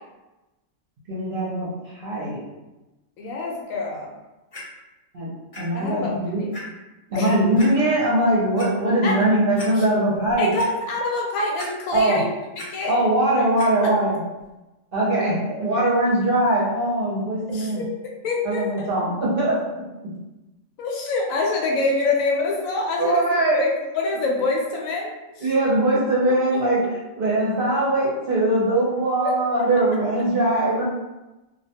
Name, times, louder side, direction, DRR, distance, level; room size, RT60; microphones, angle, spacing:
voice 1, 1.1-1.7 2.0-2.4 5.1-5.3 5.6-6.4 7.1-10.5 11.9-12.2 12.9-14.2 14.9-17.8 18.4-19.5 23.0-23.6 25.4-26.8 27.2-30.8, right 1 dB, 55° right, -6 dB, 0.8 m, -21 dB
voice 2, 3.2-4.1 5.7-6.5 7.1-7.3 9.0-9.2 9.7-9.9 10.4-12.3 12.7-12.9 17.5-17.9 18.2-18.9 20.8-23.2 23.5-25.5 26.5-26.6 29.2-29.6, left 3 dB, 85° left, -1 dB, 1.0 m, -26 dB
Clock, 4.5-4.6 5.5-5.6 6.1-6.2 6.5-6.6 7.6-7.7 8.3-8.7 9.2-9.3 9.6-9.7 10.1-10.7 11.6-12.1 12.3-12.7 13.6-13.7 14.4-14.5, left 1 dB, 40° left, 0.5 m, -38 dB
2.4 x 2.1 x 2.8 m, 1.0 s
omnidirectional pair, 1.4 m